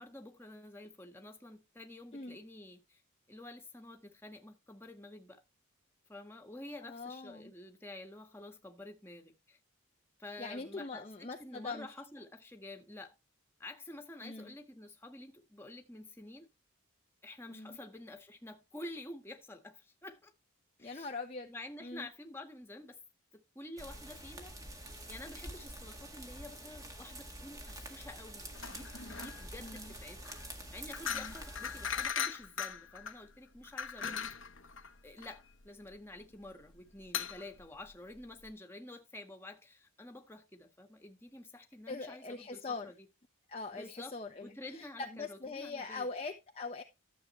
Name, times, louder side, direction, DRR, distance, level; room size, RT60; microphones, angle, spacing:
voice 1, 0.0-3.0 3.3-5.4 6.1-9.6 10.2-11.1 11.4-13.1 13.6-16.5 17.2-20.3 20.8-21.1 21.5-23.0 23.3-34.2 35.0-42.9 43.7-44.1 44.4-46.1, left 1 dB, 10° left, 1.7 m, -49 dB
voice 2, 6.8-7.5 10.4-11.9 14.2-14.5 17.5-17.8 20.8-21.5 21.8-22.1 29.6-29.9 31.1-31.3 34.0-34.3 41.9-42.9 43.5-46.8, left 3 dB, 30° left, 0.9 m, -42 dB
sound 1, 23.8-32.1, right 1 dB, 15° right, 1.7 m, -47 dB
sound 2, 28.5-38.5, left 7 dB, 65° left, 1.1 m, -40 dB
13.5 x 7.5 x 3.2 m
head